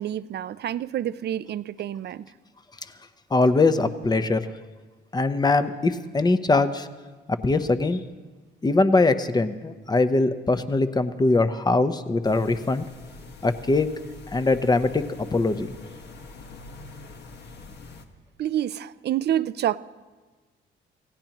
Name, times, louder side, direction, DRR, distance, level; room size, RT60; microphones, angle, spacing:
voice 1, 0.0-2.3 18.4-19.8, right 11 dB, 55° right, 17 dB, 0.5 m, -28 dB
voice 2, 3.3-4.4 5.1-6.9 7.4-8.0 8.6-12.8 13.4-13.9 14.3-15.0 15.3-15.7, left 3 dB, 20° left, 10 dB, 0.9 m, -22 dB
sound 1, 12.2-18.0, left 3 dB, 55° left, 1.5 m, -44 dB
27.5 x 16.5 x 3.0 m, 1.3 s
cardioid pair, 90°, 20 cm